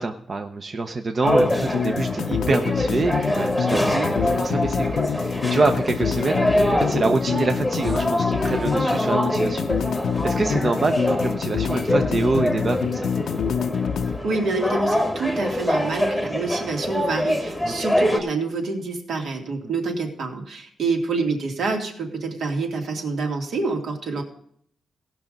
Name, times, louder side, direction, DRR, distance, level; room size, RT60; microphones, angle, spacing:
voice 1, 0.0-6.5 6.8-9.6 10.2-13.1 17.6-17.7, right 3 dB, 30° right, 6 dB, 0.7 m, -26 dB
sound 1, 1.2-18.2, equal, ahead, 1.2 m, -25 dB
sound 2, 1.3-14.2, left 7 dB, 75° left, 0.6 m, -26 dB
voice 2, 14.2-24.2, right 3 dB, 70° right, 2 dB, 2.6 m, -27 dB
17.5 x 6.1 x 5.2 m, 0.64 s
wide cardioid pair, 175°, 0 cm